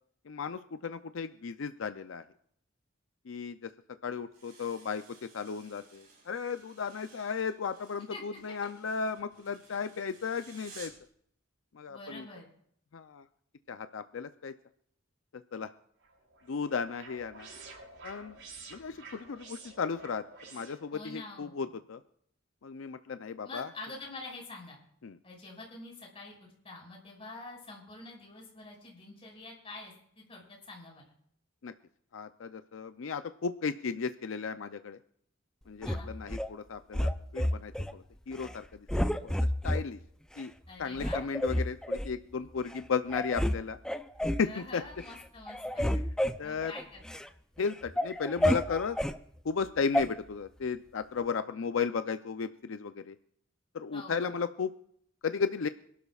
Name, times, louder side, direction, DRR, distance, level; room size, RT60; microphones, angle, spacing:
voice 1, 0.3-2.2 3.3-3.7 4.0-10.9 11.7-12.3 12.9-13.2 13.7-14.5 15.3-15.7 16.5-17.5 18.0-18.4 18.7-20.2 20.5-22.0 22.6-23.7 25.0-25.2 31.6-31.7 32.1-35.0 35.7-39.3 39.6-40.0 40.4-40.5 40.8-43.8 44.3-44.8 45.9-46.0 46.4-46.7 47.6-49.0 49.4-53.2 53.7-54.7 55.2-55.7, left 5 dB, 80° left, 10 dB, 0.5 m, -35 dB
sound 1, 4.3-11.1, right 4 dB, 50° right, 5.5 m, -55 dB
voice 2, 8.1-8.5 11.9-12.4 20.9-21.6 23.4-24.8 25.2-31.0 35.8-36.1 40.7-41.2 44.4-45.9 46.4-47.2 53.9-54.3, left 2 dB, 30° left, -1 dB, 5.6 m, -46 dB
sound 2, 16.0-21.2, right 3 dB, 70° right, 6.5 m, -50 dB
sound 3, 35.8-36.5 36.9-37.9 38.3-38.6 38.9-39.8 40.4-40.5 41.0-42.1 42.7-42.8 43.1-43.6 43.8-44.5 44.9-45.2 45.5-47.3 47.7-49.2 49.9-50.1, equal, 5° left, 0.5 m, -30 dB
27.0 x 12.0 x 2.4 m, 0.66 s
head